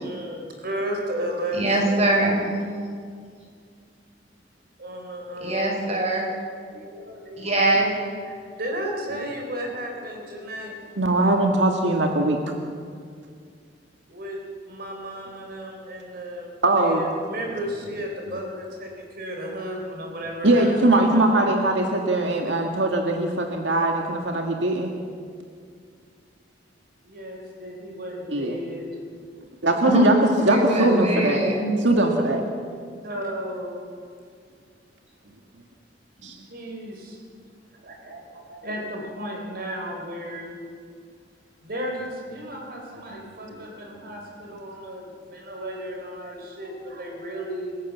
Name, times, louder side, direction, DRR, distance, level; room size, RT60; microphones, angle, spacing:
voice 1, 0.0-2.0 4.8-5.8 6.6-7.6 8.3-11.0 14.1-14.4 14.6-21.5 21.8-22.0 27.0-28.9 33.0-33.8 36.5-37.2 37.8-40.6 41.6-47.8, equal, 55° right, 2 dB, 3.6 m, -34 dB
voice 2, 1.5-2.6 5.4-6.3 7.4-7.9 29.9-30.0 30.4-31.8, right 1 dB, 35° right, 0 dB, 5.7 m, -22 dB
voice 3, 11.0-12.4 16.6-17.1 20.4-24.9 28.3-28.6 29.6-30.1 30.4-31.4 31.8-32.4 36.2-36.3, right 2 dB, 85° right, 2 dB, 1.9 m, -21 dB
28.0 x 16.0 x 7.3 m, 2.2 s
head